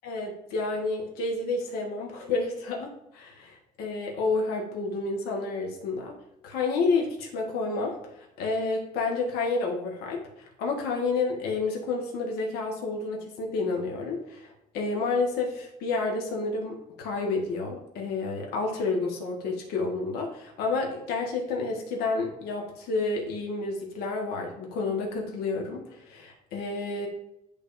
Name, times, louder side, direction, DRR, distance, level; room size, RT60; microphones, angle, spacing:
voice 1, 0.0-6.1 6.4-27.1, left 3 dB, 85° left, -1 dB, 1.4 m, -30 dB
10.5 x 3.6 x 2.6 m, 0.85 s
cardioid pair, 125°, 16 cm